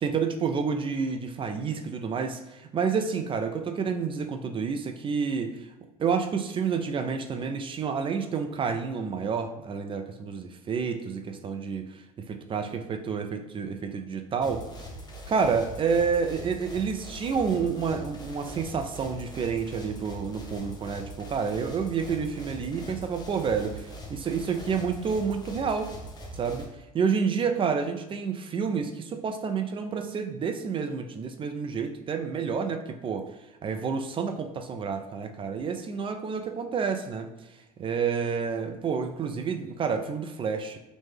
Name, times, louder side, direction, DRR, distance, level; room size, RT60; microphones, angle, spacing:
voice 1, 0.0-5.5 6.0-11.9 12.3-14.6 15.3-25.9 26.3-26.6 26.9-33.3 33.6-37.3 37.8-40.8, right 6 dB, 30° right, 5 dB, 0.4 m, -29 dB
sound 1, 14.4-26.7, equal, 20° left, 0.7 m, -42 dB
3.1 x 2.0 x 3.2 m, 1.0 s
hypercardioid pair, 70°, 19 cm